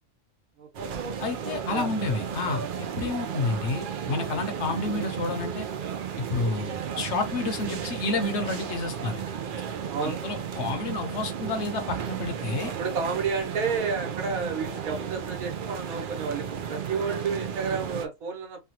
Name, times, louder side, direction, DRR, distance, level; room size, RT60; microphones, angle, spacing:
voice 1, 0.6-0.9 1.7-2.2 9.9-10.2 12.6-18.7, right 5 dB, 90° right, 1.4 m, -31 dB
sound 1, 0.7-18.1, right 7 dB, 60° right, 0.5 m, -34 dB
voice 2, 1.2-2.6 3.0-5.6 6.3-9.3 10.0-12.7, left 3 dB, 60° left, 1.1 m, -30 dB
3.3 x 2.3 x 2.8 m
omnidirectional pair, 1.4 m